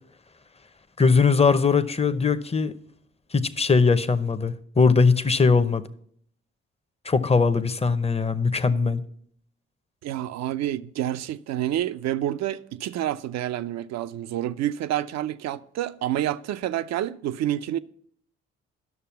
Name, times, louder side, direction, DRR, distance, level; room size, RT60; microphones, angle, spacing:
voice 1, 1.0-2.7 3.3-5.8 7.0-9.0, left 4 dB, 20° left, 0.7 m, -20 dB
voice 2, 10.0-17.8, right 12 dB, 60° right, 0.5 m, -28 dB
11.0 x 6.6 x 5.8 m
hypercardioid pair, 45°, 30 cm